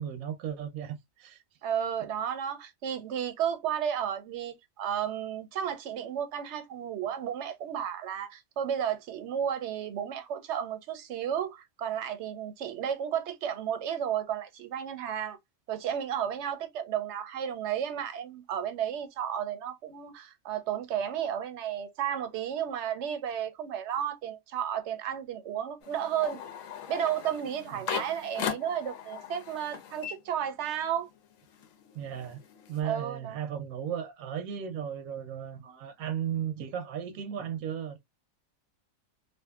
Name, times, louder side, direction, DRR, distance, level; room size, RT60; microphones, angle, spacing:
voice 1, 0.0-1.4 27.7-27.8 31.9-32.4 32.7-38.0, right 9 dB, 90° right, 1.0 m, -35 dB
voice 2, 1.6-15.4 15.7-26.4 26.9-31.1 32.8-33.4, right 9 dB, 65° right, 0.8 m, -33 dB
sound 1, 25.8-30.9 31.2-32.8, left 8 dB, 80° left, 1.0 m, -39 dB
2.6 x 2.5 x 2.3 m
omnidirectional pair, 1.4 m